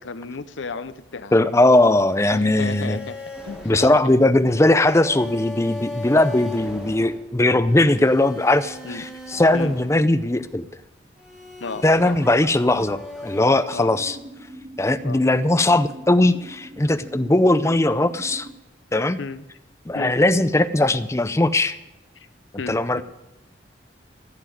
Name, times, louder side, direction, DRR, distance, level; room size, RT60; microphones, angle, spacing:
voice 1, 0.0-1.5 2.3-3.2 3.4-3.9 8.8-9.0 9.5-9.8 11.6-12.1 13.7-14.0 15.0-15.2 19.2-19.5 19.9-20.2 22.2-22.3 22.6-23.0, left 4 dB, 85° left, 13 dB, 0.7 m, -33 dB
voice 2, 1.3-3.0 3.6-10.7 11.8-14.2 14.8-18.5 18.9-19.2 19.9-21.8 22.7-23.0, left 2 dB, 15° left, 11 dB, 0.6 m, -19 dB
sound 1, 2.1-10.6 11.2-13.5, left 2 dB, 5° right, 2.0 m, -37 dB
sound 2, 13.5-18.5, right 1 dB, 20° right, 1.2 m, -42 dB
14.5 x 7.2 x 9.3 m, 0.94 s
head